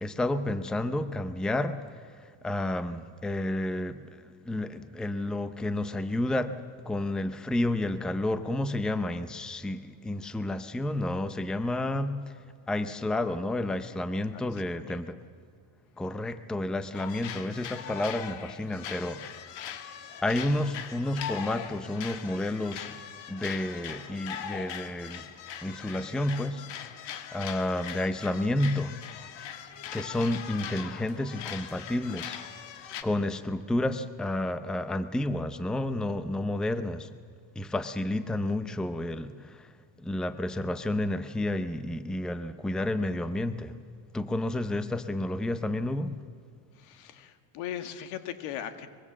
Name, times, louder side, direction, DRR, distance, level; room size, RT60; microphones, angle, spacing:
voice 1, 0.0-1.8 2.2-12.3 12.7-15.2 16.0-19.2 20.2-23.0 23.3-25.2 25.6-29.0 29.9-32.4 33.0-37.1 37.6-43.8 44.1-46.2, left 1 dB, ahead, 11 dB, 0.5 m, -31 dB
voice 2, 14.3-15.0 46.7-48.9, left 10 dB, 85° left, 9 dB, 2.0 m, -39 dB
sound 1, 16.9-33.0, left 8 dB, 65° left, 1.9 m, -41 dB
24.0 x 22.0 x 7.4 m, 2.2 s
cardioid pair, 155°, 47 cm